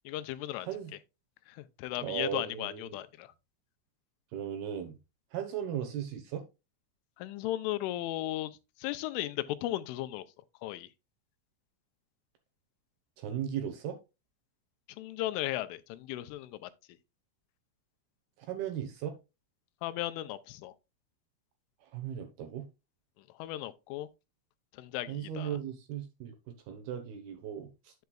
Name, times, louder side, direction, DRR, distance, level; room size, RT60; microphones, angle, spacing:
voice 1, 0.1-0.7 1.5-3.3 7.2-10.2 10.6-10.9 15.0-16.7 19.8-20.7 23.4-24.1 24.8-25.6, left 15 dB, 90° left, 3.2 m, -36 dB
voice 2, 2.0-3.0 4.3-5.0 5.3-6.4 13.2-14.0 18.5-19.1 21.9-22.6 25.1-27.7, right 9 dB, 70° right, 2.6 m, -37 dB
9.3 x 7.8 x 2.3 m
omnidirectional pair, 5.5 m